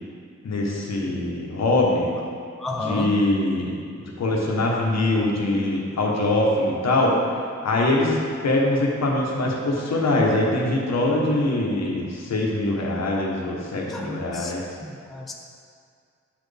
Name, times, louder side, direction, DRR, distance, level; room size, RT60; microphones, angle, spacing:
voice 1, 0.4-2.1 2.7-7.2 7.6-14.6, left 2 dB, 65° left, -2 dB, 1.1 m, -23 dB
voice 2, 2.6-3.1 13.9-14.5 14.8-15.3, left 2 dB, ahead, 0 dB, 0.5 m, -31 dB
7.8 x 4.3 x 3.4 m, 2.2 s
cardioid pair, 80°, 29 cm